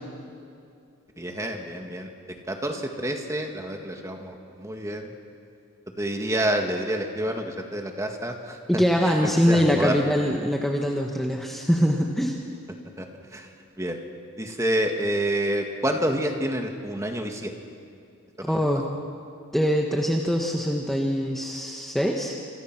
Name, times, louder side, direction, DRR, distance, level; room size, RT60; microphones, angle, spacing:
voice 1, 1.2-2.1 2.5-5.1 6.0-10.0 13.0-13.5 13.8-14.0 14.4-17.5 18.5-18.7, right 1 dB, 15° right, 3 dB, 1.8 m, -28 dB
voice 2, 8.7-12.3 18.4-18.8 19.5-22.3, equal, ahead, 0 dB, 1.3 m, -23 dB
27.0 x 27.0 x 6.1 m, 2.4 s
head